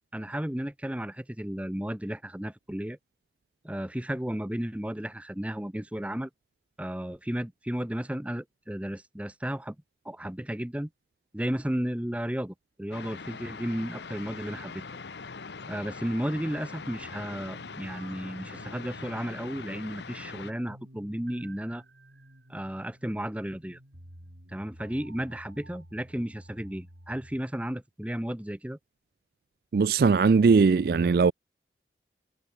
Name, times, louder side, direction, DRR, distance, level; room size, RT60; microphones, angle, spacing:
voice 1, 0.1-3.0 3.6-6.3 6.8-9.8 10.0-10.9 11.3-14.8 15.7-21.8 22.5-23.8 24.5-28.8, equal, 5° right, 0.7 m, -33 dB
sound 1, 12.9-20.5, left 4 dB, 75° left, 0.9 m, -42 dB
sound 2, 17.0-27.4, right 1 dB, 80° right, 6.6 m, -51 dB
voice 2, 29.7-31.3, right 5 dB, 55° right, 0.3 m, -20 dB
head